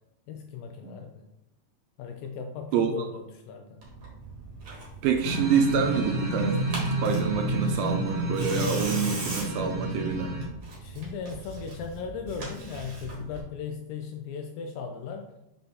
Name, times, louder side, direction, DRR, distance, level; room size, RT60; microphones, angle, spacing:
voice 1, 0.3-1.3 2.0-3.8 10.8-15.3, left 6 dB, 90° left, 4 dB, 1.9 m, -37 dB
Tearing, 3.8-13.4, right 3 dB, 45° right, 1.9 m, -40 dB
voice 2, 5.0-10.4, right 6 dB, 80° right, 4 dB, 2.1 m, -27 dB
sound 1, 5.2-10.4, right 2 dB, 60° right, 1.2 m, -30 dB
5.7 x 5.1 x 3.6 m, 0.84 s
omnidirectional pair, 4.6 m